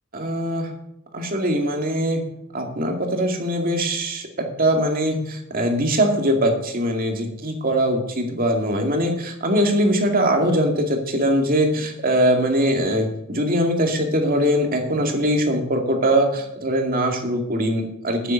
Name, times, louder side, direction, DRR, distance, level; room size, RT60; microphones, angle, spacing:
voice 1, 0.1-0.7 1.1-2.3 2.5-18.3, equal, 45° right, 3 dB, 2.3 m, -22 dB
9.3 x 8.9 x 7.1 m, 0.81 s
head